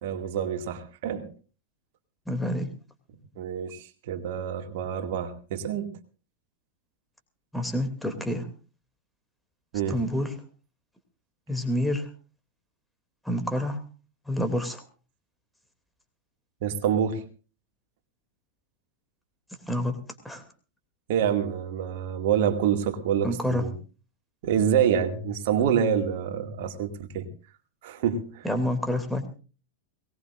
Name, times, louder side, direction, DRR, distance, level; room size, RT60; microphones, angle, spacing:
voice 1, 0.0-1.3 3.4-5.9 9.7-10.0 16.6-17.2 21.1-23.7 24.4-27.3 27.8-28.5, right 8 dB, 50° right, 6 dB, 2.3 m, -27 dB
voice 2, 2.3-2.7 7.5-8.5 9.9-10.3 11.5-12.1 13.2-13.8 14.3-14.8 19.7-20.0 20.2-20.4 23.2-23.6 28.4-29.3, left 1 dB, 5° left, 7 dB, 2.7 m, -28 dB
22.5 x 19.0 x 2.6 m, 0.36 s
figure-of-eight pair, 90°, 0 cm